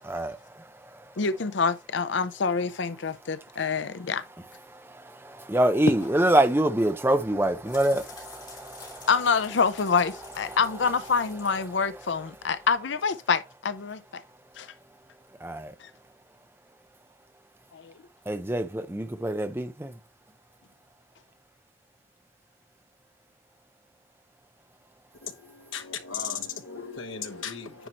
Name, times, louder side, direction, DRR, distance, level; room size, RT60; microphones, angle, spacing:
voice 1, 0.0-1.1 4.7-9.1 10.5-10.6 15.4-15.7 18.3-19.9, right 1 dB, 10° right, 0.6 m, -26 dB
voice 2, 1.2-4.2 9.1-14.2 14.6-14.7 15.8-15.9 17.7-17.9, left 5 dB, 65° left, 0.6 m, -26 dB
sound 1, 7.2-12.7, left 4 dB, 25° left, 3.2 m, -48 dB
voice 3, 25.1-27.9, left 7 dB, 85° left, 1.1 m, -36 dB
10.0 x 4.6 x 2.9 m
head